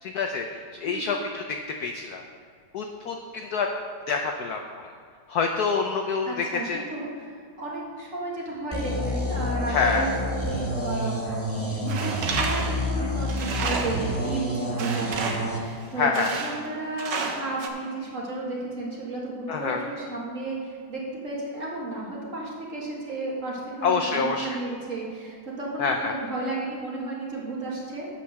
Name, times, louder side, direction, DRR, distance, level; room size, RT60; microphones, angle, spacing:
voice 1, 0.0-2.2 2.7-3.7 4.1-4.9 5.3-6.8 9.7-10.1 16.0-16.4 19.5-19.8 23.8-24.5 25.8-26.1, left 5 dB, 80° left, 3 dB, 0.8 m, -27 dB
voice 2, 0.9-1.3 6.3-7.3 7.6-11.2 11.6-28.1, right 2 dB, 40° right, -4 dB, 2.0 m, -33 dB
sound 1, 8.7-15.6, equal, 10° left, 0.9 m, -29 dB
Tools, 11.9-14.1 14.8-15.6 16.1-16.7 17.0-17.7, right 4 dB, 60° right, 1.4 m, -31 dB
8.5 x 5.9 x 6.4 m, 2.2 s
omnidirectional pair, 2.4 m